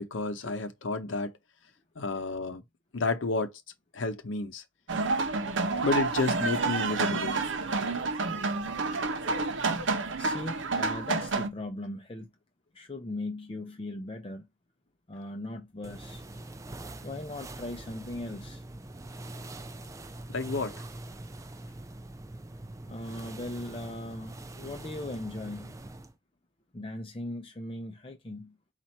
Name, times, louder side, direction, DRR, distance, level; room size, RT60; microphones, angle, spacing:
voice 1, 0.0-1.3 2.0-2.6 2.9-3.5 3.9-4.6 5.8-7.4 20.3-20.8, left 3 dB, 85° left, 0.7 m, -31 dB
sound 1, 4.9-11.5, right 3 dB, 75° right, 0.8 m, -29 dB
voice 2, 10.2-12.3 12.7-14.5 15.1-16.2 17.0-18.6 22.9-25.7 26.7-28.5, left 1 dB, 30° left, 0.6 m, -38 dB
sound 2, 15.8-26.1, right 2 dB, 15° right, 0.4 m, -43 dB
4.3 x 2.5 x 4.3 m
head